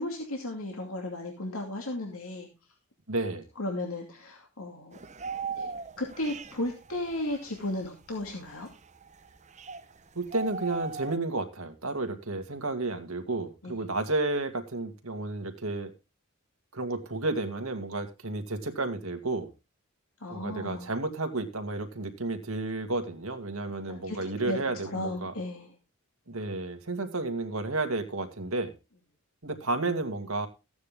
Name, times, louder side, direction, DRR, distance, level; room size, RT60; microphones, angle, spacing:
voice 1, 0.0-2.5 3.6-5.0 5.6-5.7 6.0-8.7 13.6-13.8 20.2-20.9 23.9-24.2 24.4-24.6 24.8-25.7, left 1 dB, 75° left, 1 dB, 2.5 m, -34 dB
voice 2, 3.1-3.4 10.2-15.9 16.7-19.5 20.3-25.3 26.3-28.7 29.4-30.5, right 2 dB, 80° right, 7 dB, 2.2 m, -32 dB
sound 1, 4.9-10.0 10.3-11.2, right 4 dB, 35° right, 0.9 m, -38 dB
15.0 x 9.5 x 3.6 m, 0.28 s
head